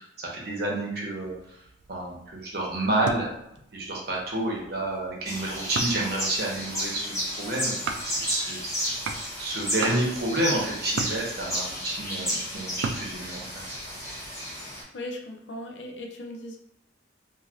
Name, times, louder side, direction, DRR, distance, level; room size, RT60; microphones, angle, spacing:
voice 1, 0.0-1.6 1.9-3.3 3.7-7.7 8.0-8.8 9.4-13.8, right 1 dB, 55° right, -3 dB, 0.9 m, -30 dB
sound 1, 1.2-14.3, right 4 dB, 80° right, 0.3 m, -40 dB
sound 2, 5.3-14.8, equal, 15° left, 0.8 m, -32 dB
voice 2, 14.6-16.6, left 1 dB, 75° left, 2 dB, 0.5 m, -38 dB
3.1 x 2.6 x 2.5 m, 0.81 s
head